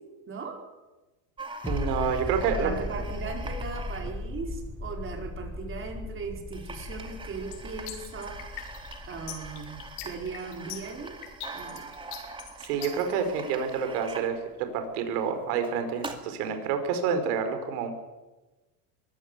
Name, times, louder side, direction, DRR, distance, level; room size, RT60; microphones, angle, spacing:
voice 1, 0.3-0.6 2.5-8.4 9.1-11.2 11.5-11.9, right 5 dB, 25° right, 2 dB, 4.9 m, -38 dB
sound 1, 1.4-5.1 5.9-6.0 6.2-6.3 6.5-16.5, right 3 dB, 10° right, 2.3 m, -43 dB
sound 2, 1.6-13.0 13.3-13.4, left 2 dB, 5° left, 1.5 m, -38 dB
voice 2, 1.7-2.7 12.6-17.9, right 6 dB, 70° right, 7 dB, 4.8 m, -28 dB
sound 3, 7.5-13.1, left 10 dB, 70° left, 5.7 m, -41 dB
23.0 x 16.0 x 8.3 m, 1.1 s
supercardioid pair, 145°, 47 cm